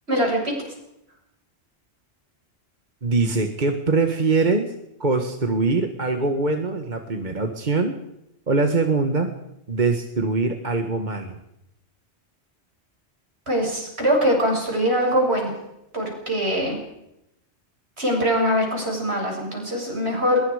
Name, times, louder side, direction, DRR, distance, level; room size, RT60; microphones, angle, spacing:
voice 1, 0.1-0.7 13.5-15.5 15.9-16.8 18.0-20.4, equal, 70° right, 0 dB, 7.8 m, -22 dB
voice 2, 3.0-4.7 5.0-8.0 8.5-9.3 9.7-11.4, right 3 dB, 45° right, 5 dB, 1.8 m, -23 dB
23.0 x 22.0 x 5.0 m, 0.84 s
omnidirectional pair, 1.1 m